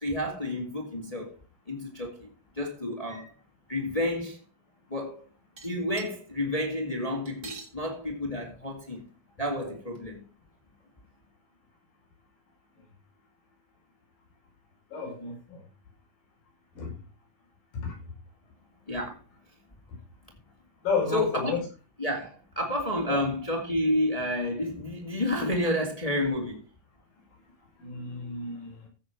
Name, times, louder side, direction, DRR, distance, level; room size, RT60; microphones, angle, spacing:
voice 1, 0.0-1.4 1.7-2.3 2.6-3.3 3.7-4.4 4.9-5.3 5.6-9.0 9.4-10.2 18.9-19.2 21.1-21.6 22.0-26.6, left 1 dB, 15° left, 1.7 m, -30 dB
sound 1, 5.6-6.1 7.2-7.7 8.6-8.7 9.0-9.1 9.9-10.0, right 5 dB, 35° right, 1.9 m, -43 dB
voice 2, 14.9-15.6 16.7-16.9 17.7-18.0 20.8-21.6 23.1-23.2 27.8-28.9, left 4 dB, 90° left, 6.7 m, -31 dB
15.5 x 6.8 x 4.6 m
omnidirectional pair, 3.8 m